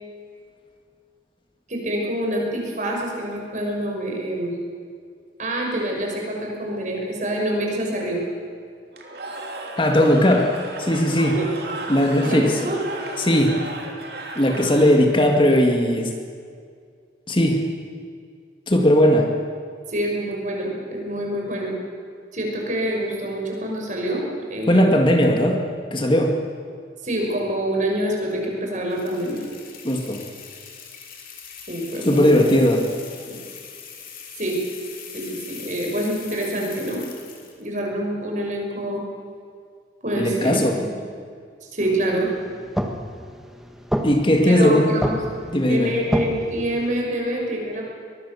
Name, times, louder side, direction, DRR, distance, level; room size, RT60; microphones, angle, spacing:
voice 1, 1.7-4.5 5.4-8.2 11.3-11.5 12.2-12.8 19.9-21.7 22.3-24.2 24.5-25.0 27.0-29.4 31.7-32.5 33.3-33.4 34.4-34.6 35.1-37.0 37.6-39.0 40.0-40.9 41.6-42.3 44.4-45.2 45.7-47.8, right 1 dB, 45° right, -1 dB, 6.0 m, -26 dB
Cheering / Crowd, 8.9-15.3, right 2 dB, 60° right, 3.1 m, -35 dB
voice 2, 9.8-11.4 11.9-12.6 13.2-13.6 14.4-16.2 17.3-17.6 18.7-19.3 24.7-25.6 25.9-26.4 29.8-30.2 32.0-32.9 40.1-40.8 44.0-45.0 45.5-45.9, equal, 30° left, 2 dB, 1.9 m, -18 dB
sound 1, 28.9-37.6, left 7 dB, 50° left, 3.6 m, -41 dB
sound 2, 41.8-47.0, equal, ahead, 1.4 m, -30 dB
24.0 x 20.5 x 7.0 m, 2.2 s
head